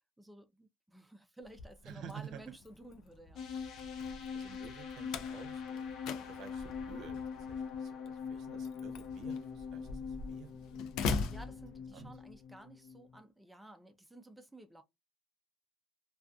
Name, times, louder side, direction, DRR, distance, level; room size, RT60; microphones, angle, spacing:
voice 1, 0.2-3.4 11.0-14.8, right 1 dB, 5° right, 0.4 m, -54 dB
Slam, 1.4-12.3, left 4 dB, 85° left, 0.4 m, -43 dB
voice 2, 1.8-2.4 4.3-10.9 11.9-12.2, right 8 dB, 65° right, 0.6 m, -52 dB
sound 1, 3.4-13.2, left 6 dB, 65° left, 0.8 m, -43 dB
2.4 x 2.3 x 2.4 m
cardioid pair, 135°, 0 cm